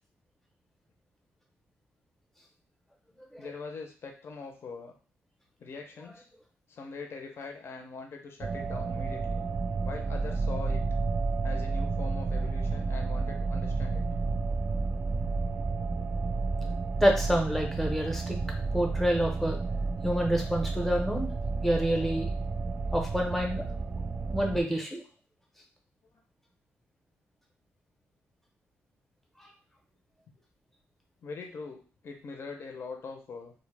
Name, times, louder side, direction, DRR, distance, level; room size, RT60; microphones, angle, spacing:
voice 1, 3.4-4.9 5.6-6.3 6.7-9.4 9.8-10.9 11.4-14.0 26.1-26.2 30.3-30.4 31.2-33.5, left 4 dB, 50° left, 3 dB, 0.6 m, -42 dB
sound 1, 8.4-24.6, right 3 dB, 35° right, 0.3 m, -31 dB
voice 2, 17.0-18.4 18.7-19.6 20.0-21.3 21.6-22.3 22.9-23.7 24.3-25.0 29.4-29.5, equal, 5° left, 1 dB, 0.7 m, -27 dB
2.1 x 2.1 x 3.2 m, 0.38 s
cardioid pair, 95°, 5 cm